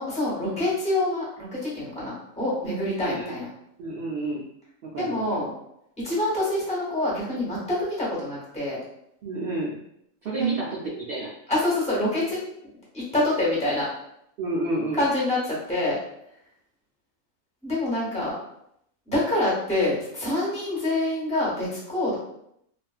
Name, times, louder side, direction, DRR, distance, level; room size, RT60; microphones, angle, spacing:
voice 1, 0.0-3.5 5.0-5.5 6.0-8.8 10.4-10.5 11.5-12.4 12.9-13.9 14.9-16.0 17.6-18.3 19.1-22.2, left 1 dB, 5° left, -8 dB, 0.9 m, -26 dB
voice 2, 3.0-3.3 3.8-4.4 4.8-5.4 9.2-9.8 10.2-11.3 14.4-15.0, right 2 dB, 65° right, -5 dB, 0.5 m, -30 dB
2.4 x 2.4 x 2.3 m, 0.74 s
omnidirectional pair, 1.5 m